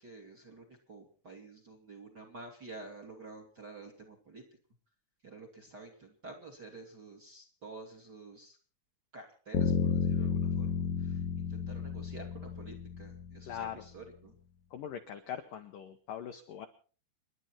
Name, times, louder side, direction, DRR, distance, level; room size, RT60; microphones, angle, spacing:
voice 1, 0.0-4.4 5.2-8.6 9.1-14.3, right 3 dB, 30° right, 5 dB, 2.2 m, -50 dB
sound 1, 9.5-13.5, left 7 dB, 60° left, 2.1 m, -32 dB
voice 2, 13.5-13.9 14.7-16.7, left 9 dB, 85° left, 7 dB, 1.9 m, -41 dB
29.5 x 11.0 x 4.3 m, 0.40 s
omnidirectional pair, 5.5 m